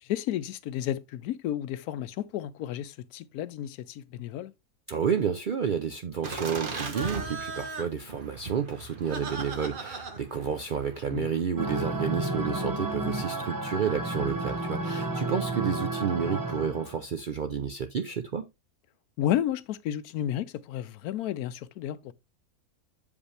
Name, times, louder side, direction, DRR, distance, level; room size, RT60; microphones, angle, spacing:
voice 1, 0.0-4.5 11.1-11.3 19.2-22.1, left 11 dB, 85° left, 1.1 m, -32 dB
voice 2, 4.9-18.5, right 7 dB, 65° right, 0.4 m, -30 dB
Laughter, 6.2-11.4, right 3 dB, 40° right, 1.1 m, -37 dB
sound 1, 11.6-17.0, right 2 dB, 20° right, 0.6 m, -31 dB
7.1 x 5.1 x 3.2 m
omnidirectional pair, 1.5 m